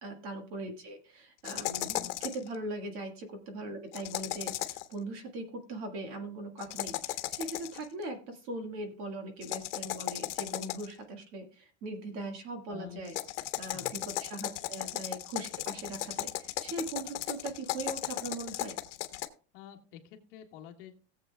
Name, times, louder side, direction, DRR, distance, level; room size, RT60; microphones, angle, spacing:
voice 1, 0.0-13.1 13.6-18.8, right 2 dB, 40° right, 5 dB, 1.8 m, -40 dB
sound 1, 1.4-2.5 3.9-4.9 6.6-7.8 9.4-11.0 13.0-19.3, left 16 dB, 75° left, 1.2 m, -36 dB
voice 2, 12.7-13.0 13.7-13.9 19.5-20.9, left 11 dB, 50° left, 1 dB, 1.8 m, -48 dB
18.0 x 7.8 x 2.3 m, 0.37 s
supercardioid pair, 175°, 36 cm